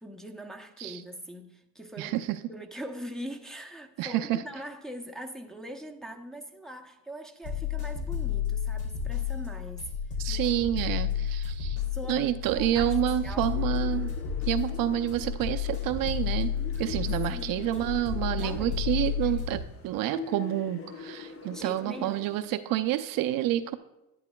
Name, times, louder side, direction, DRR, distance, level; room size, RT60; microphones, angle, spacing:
voice 1, 0.0-2.2 2.5-9.9 10.3-10.9 11.9-13.0 13.2-13.5 16.7-16.9 17.3-18.8 19.2-19.4 21.5-22.4, equal, ahead, 0.7 m, -42 dB
voice 2, 2.0-2.4 4.0-4.4 10.2-11.8 12.1-14.1 14.5-16.5 16.8-23.8, right 13 dB, 65° right, 0.5 m, -29 dB
sound 1, 7.4-19.6, left 9 dB, 75° left, 2.7 m, -31 dB
sound 2, 12.5-22.4, left 6 dB, 40° left, 0.9 m, -45 dB
10.5 x 10.5 x 2.2 m
cardioid pair, 110°, 37 cm